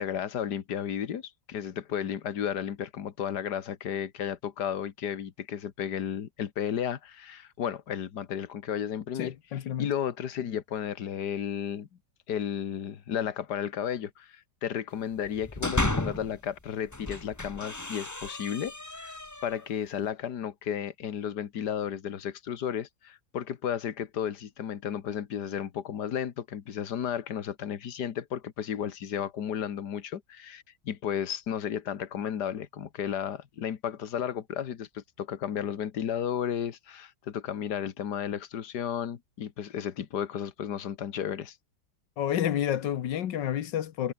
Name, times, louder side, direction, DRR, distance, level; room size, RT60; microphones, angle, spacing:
voice 1, 0.0-9.3 9.8-11.9 12.3-41.6, left 9 dB, 70° left, 2.0 m, -33 dB
voice 2, 9.2-9.9 42.2-44.1, left 10 dB, 90° left, 1.8 m, -29 dB
sound 1, 15.2-16.4 16.9-19.7, left 2 dB, 10° left, 1.1 m, -33 dB
omnidirectional pair, 1.9 m